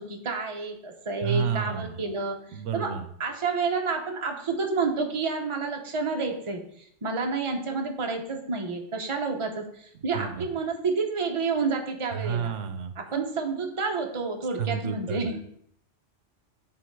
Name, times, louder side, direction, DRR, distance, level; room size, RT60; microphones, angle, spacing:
voice 1, 0.0-2.4 2.7-2.9 3.2-6.6 7.0-12.5 13.0-15.4, right 4 dB, 30° right, 2 dB, 0.9 m, -29 dB
voice 2, 1.2-2.0 2.5-3.1 10.1-10.5 12.2-12.9 14.6-15.4, right 7 dB, 90° right, 9 dB, 1.1 m, -30 dB
8.0 x 3.8 x 4.6 m, 0.68 s
omnidirectional pair, 1.2 m